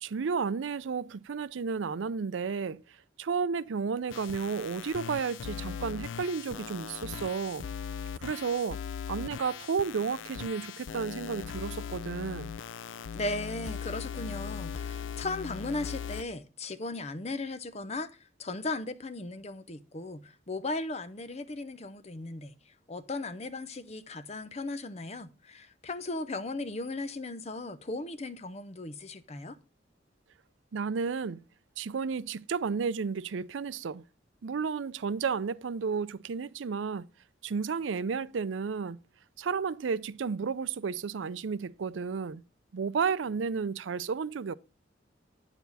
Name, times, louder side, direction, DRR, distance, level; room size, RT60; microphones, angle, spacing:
voice 1, 0.0-2.8 3.2-7.7 8.2-8.8 9.1-12.5 30.7-31.4 31.8-34.0 34.4-37.1 37.4-39.0 39.4-42.4 42.7-44.5, right 5 dB, 80° right, 0.5 m, -32 dB
sound 1, 4.1-16.2, left 7 dB, 85° left, 0.5 m, -39 dB
voice 2, 13.1-18.1 18.4-22.5 22.9-29.6, left 2 dB, 35° left, 0.7 m, -37 dB
9.1 x 7.1 x 4.0 m
head